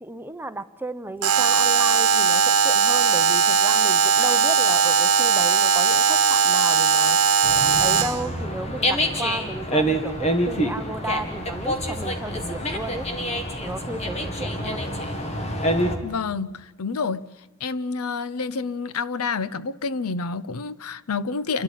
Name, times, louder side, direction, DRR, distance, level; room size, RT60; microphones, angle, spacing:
voice 1, 0.0-7.2 7.8-13.1 13.6-14.9, right 2 dB, 10° right, 0.8 m, -33 dB
Alarm, 1.2-8.2, right 6 dB, 85° right, 1.0 m, -19 dB
Dog, 7.4-16.0, equal, 30° left, 2.2 m, -26 dB
voice 2, 16.0-17.3 17.6-21.6, left 4 dB, 80° left, 0.7 m, -28 dB
29.0 x 12.5 x 9.9 m
head